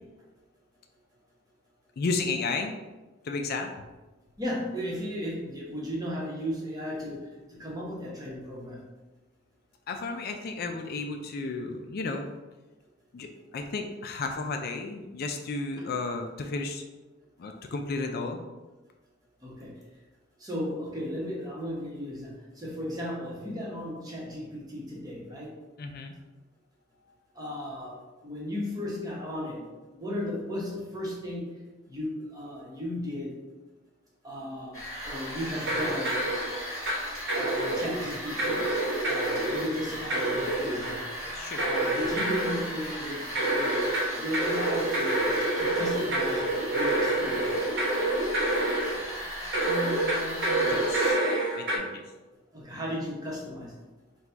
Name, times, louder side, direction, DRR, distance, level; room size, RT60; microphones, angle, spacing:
voice 1, 2.0-2.7 3.2-3.7 9.9-12.3 13.1-16.8 17.4-18.4 25.8-26.1 41.3-41.6 49.7-51.2 51.6-52.0, left 3 dB, 50° left, 4 dB, 0.4 m, -33 dB
voice 2, 4.4-8.8 19.4-19.7 20.4-25.5 27.3-28.0 28.2-29.7 30.0-31.5 31.9-33.3 34.2-34.8 35.0-36.1 37.3-38.6 39.0-41.0 41.6-43.3 43.5-43.8 44.1-45.3 45.6-46.4 46.7-47.7 52.5-53.7, equal, 20° right, -4 dB, 1.0 m, -35 dB
sound 1, 34.7-51.1, equal, 15° left, 1.4 m, -37 dB
sound 2, 35.6-37.0 37.3-38.0 38.4-39.7 40.1-41.1 41.6-42.7 43.3-49.0 49.5-51.8, right 1 dB, 60° right, 1.0 m, -27 dB
4.1 x 2.3 x 4.4 m, 1.2 s
head